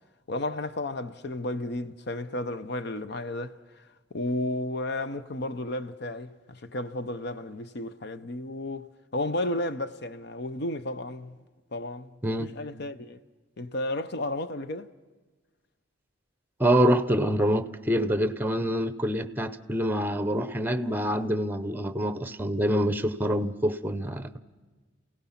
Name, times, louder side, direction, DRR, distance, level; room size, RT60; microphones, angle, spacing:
voice 1, 0.3-3.8 4.1-11.4 11.7-13.2 13.6-14.9, left 1 dB, 60° left, 0.7 m, -33 dB
voice 2, 16.6-24.4, equal, 10° right, 0.7 m, -26 dB
28.0 x 17.5 x 5.8 m
head